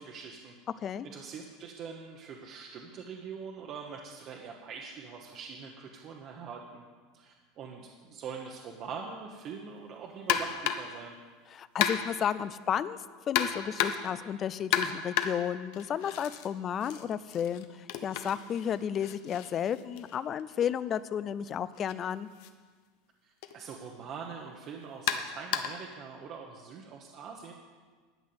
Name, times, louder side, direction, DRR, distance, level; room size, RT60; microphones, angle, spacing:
voice 1, 0.0-6.9 7.1-11.2 23.2-27.5, right 6 dB, 30° right, 0 dB, 1.1 m, -43 dB
sound 1, 10.3-11.0 11.8-12.3 13.3-14.2 14.7-16.5 16.8-20.7 21.8-21.9 22.4-22.5 23.4-23.6 25.1-25.9, left 9 dB, 55° left, 0.9 m, -32 dB
voice 2, 11.5-13.0 13.3-22.3, left 9 dB, 25° left, 16 dB, 0.4 m, -32 dB
12.0 x 6.2 x 9.5 m, 1.5 s
supercardioid pair, 165°, 0 cm